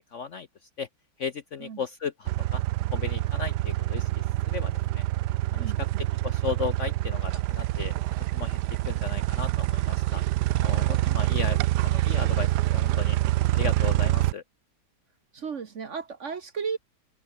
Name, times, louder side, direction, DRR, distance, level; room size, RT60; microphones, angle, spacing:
voice 1, 0.1-0.5 0.8-0.9 1.2-2.6 2.9-4.1 4.5-5.0 5.5-5.7 6.2-7.9 8.3-8.6 8.9-10.2 10.5-11.6 11.8-13.2 13.5-14.4, left 6 dB, 55° left, 0.9 m, -35 dB
sound 1, 2.3-14.3, right 15 dB, 70° right, 1.1 m, -26 dB
voice 2, 5.6-6.1 15.3-16.8, right 6 dB, 45° right, 1.2 m, -35 dB
omnidirectional pair, 2.0 m